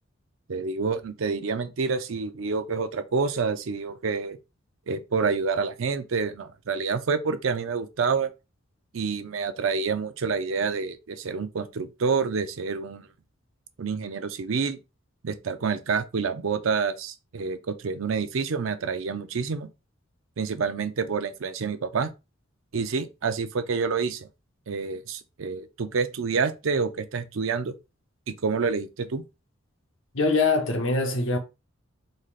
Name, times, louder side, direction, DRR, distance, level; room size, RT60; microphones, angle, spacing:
voice 1, 0.5-4.4 4.9-8.3 8.9-13.1 13.8-14.8 15.2-19.7 20.4-22.1 22.7-24.3 24.7-27.7 28.3-29.2, right 5 dB, 75° right, 0.5 m, -28 dB
voice 2, 30.1-31.4, left 3 dB, 65° left, 0.9 m, -23 dB
3.8 x 3.3 x 2.4 m
head